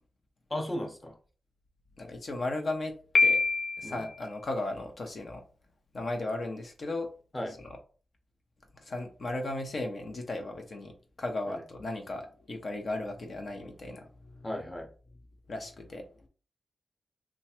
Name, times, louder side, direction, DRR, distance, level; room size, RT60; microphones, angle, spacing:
voice 1, 0.5-1.1 3.8-4.0 7.3-7.6 11.5-11.6 14.4-14.9, left 1 dB, 20° left, 3 dB, 1.0 m, -35 dB
voice 2, 2.0-3.4 3.8-5.4 5.9-7.1 7.5-7.8 8.7-14.5 15.5-16.3, left 2 dB, 55° left, 4 dB, 1.0 m, -36 dB
Piano, 3.1-4.1, left 4 dB, 70° left, 0.4 m, -25 dB
3.1 x 2.3 x 4.3 m, 0.38 s
cardioid pair, 55°, 0 cm